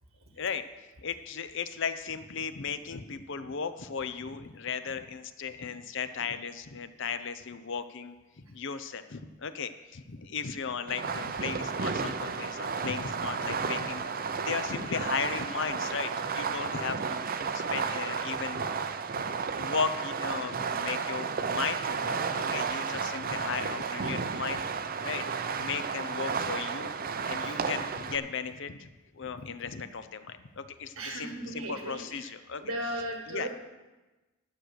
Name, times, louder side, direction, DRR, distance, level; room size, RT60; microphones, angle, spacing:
voice 1, 1.0-8.1 8.5-14.1 14.4-17.2 17.5-18.7 19.1-19.3 19.5-24.6 25.0-25.2 25.6-26.9 27.3-32.6 33.3-33.5, left 6 dB, 60° left, 11 dB, 0.7 m, -36 dB
Fireworks, 10.9-28.2, right 5 dB, 40° right, 0.5 m, -33 dB
voice 2, 30.9-32.3 32.6-33.5, right 1 dB, 80° right, 2 dB, 1.4 m, -36 dB
12.0 x 6.4 x 7.9 m, 1.1 s
head